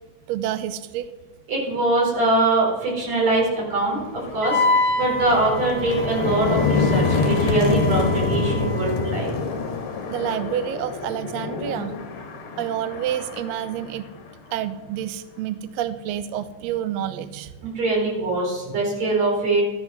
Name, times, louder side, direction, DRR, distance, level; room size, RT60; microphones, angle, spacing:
voice 1, 0.3-1.1 10.1-12.0 12.6-14.1 14.5-17.7 18.7-18.8, right 11 dB, 75° right, 12 dB, 1.5 m, -29 dB
voice 2, 1.5-4.0 4.3-4.6 5.0-9.5 17.6-19.6, right 2 dB, 55° right, -3 dB, 5.6 m, -22 dB
sound 1, 3.2-3.3 3.8-14.6, left 4 dB, 50° left, 2.0 m, -26 dB
Wind instrument woodwind instrument, 4.4-9.1, left 2 dB, 10° right, 3.7 m, -27 dB
14.0 x 11.5 x 6.0 m, 1.2 s
omnidirectional pair, 3.6 m